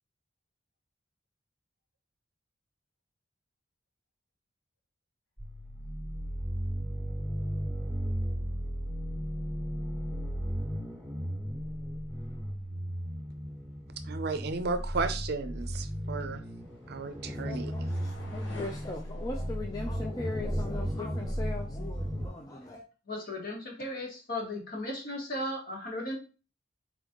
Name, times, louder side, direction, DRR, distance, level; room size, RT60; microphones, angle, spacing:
sound 1, 5.4-22.3, equal, ahead, 1.4 m, -35 dB
voice 1, 14.1-16.4 16.9-17.7, right 4 dB, 55° right, 0.5 m, -34 dB
sound 2, 15.6-20.9, left 3 dB, 70° left, 1.3 m, -53 dB
voice 2, 17.3-22.8, left 2 dB, 20° left, 0.5 m, -40 dB
voice 3, 23.1-26.2, left 1 dB, 50° left, 1.7 m, -36 dB
4.3 x 4.0 x 3.0 m
head